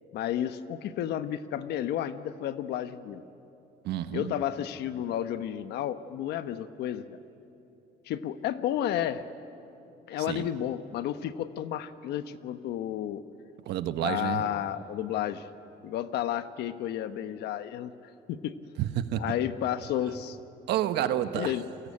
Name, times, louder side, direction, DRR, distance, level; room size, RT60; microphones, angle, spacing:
voice 1, 0.1-3.2 4.1-7.2 8.1-9.2 10.1-13.2 14.0-15.5 15.8-17.9 18.3-18.5 19.2-20.4 21.3-21.6, left 11 dB, 80° left, 11 dB, 1.1 m, -32 dB
voice 2, 3.8-4.3 10.3-10.5 13.7-14.4 18.8-19.2 20.7-21.5, right 11 dB, 80° right, 10 dB, 1.4 m, -29 dB
30.0 x 22.5 x 8.7 m, 2.9 s
cardioid pair, 110°, 17 cm